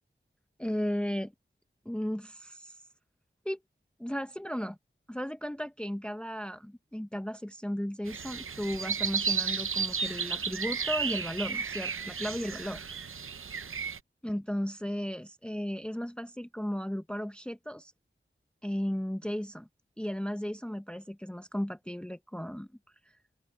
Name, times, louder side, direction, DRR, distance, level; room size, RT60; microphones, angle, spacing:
voice 1, 0.6-1.3 1.9-2.8 3.4-3.6 4.0-4.8 5.1-12.8 14.2-17.9 18.6-19.7 20.0-22.7, equal, 5° left, 0.8 m, -35 dB
sound 1, 8.1-14.0, right 6 dB, 85° right, 0.7 m, -33 dB
open air
wide cardioid pair, 60°, 21 cm